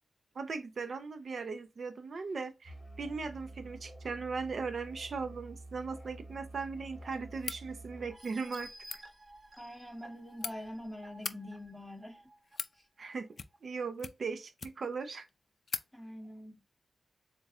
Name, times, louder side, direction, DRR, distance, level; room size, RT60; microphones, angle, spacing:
voice 1, 0.3-8.7 13.0-13.3 13.6-15.3, right 4 dB, 65° right, 0.6 m, -38 dB
Musical instrument, 2.6-8.2, right 2 dB, 15° right, 1.9 m, -49 dB
sound 1, 7.4-7.6 8.7-9.0 10.0-10.5 11.1-11.4 12.2-12.8 13.3-13.7 14.0-15.0 15.3-15.4 15.7-15.9, left 5 dB, 65° left, 0.4 m, -40 dB
sound 2, 8.1-12.6 13.1-13.2 13.5-13.6, right 1 dB, 40° right, 1.2 m, -54 dB
voice 2, 9.6-12.2 15.9-16.6, left 1 dB, ahead, 2.0 m, -44 dB
7.1 x 2.4 x 2.5 m
wide cardioid pair, 90°, 0 cm